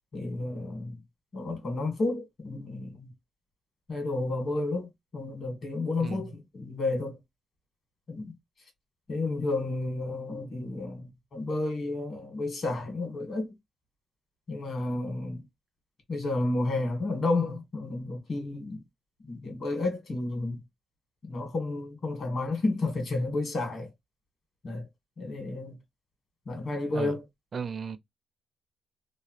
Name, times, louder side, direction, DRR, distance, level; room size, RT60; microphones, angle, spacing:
voice 1, 0.1-1.0 1.3-3.1 3.9-7.2 8.1-8.3 9.1-13.5 14.5-15.4 16.1-18.8 19.3-20.6 21.3-23.9 24.6-24.9 25.2-25.8 26.5-27.2, left 2 dB, 50° left, 1.5 m, -31 dB
voice 2, 27.5-28.0, right 5 dB, 45° right, 0.5 m, -34 dB
2.9 x 2.3 x 2.9 m
cardioid pair, 90°, 0 cm